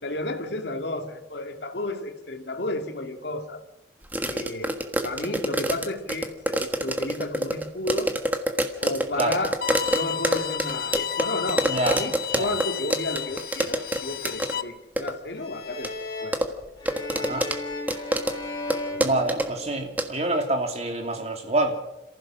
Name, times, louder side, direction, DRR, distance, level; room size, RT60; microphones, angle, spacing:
voice 1, 0.0-3.6 4.3-4.7 5.0-8.1 8.8-9.6 9.9-15.9 16.2-16.4 17.4-17.5 18.9-19.2, left 2 dB, 70° left, 6 dB, 2.3 m, -32 dB
sound 1, 4.1-12.6 12.9-14.0 14.2-14.5 15.0-15.1 15.8-15.9 16.3-17.6 17.9-18.3 18.7-18.8 19.0-19.5 20.0-20.1, right 1 dB, 10° right, 1.5 m, -25 dB
Bowed string instrument, 9.6-14.6, left 9 dB, 55° left, 0.7 m, -32 dB
voice 2, 11.6-12.0 12.3-12.5 17.1-17.5 19.0-21.8, right 2 dB, 35° right, 4 dB, 2.9 m, -26 dB
sound 2, 15.4-20.0, left 2 dB, 25° left, 5.0 m, -35 dB
28.0 x 15.5 x 6.3 m, 0.92 s
head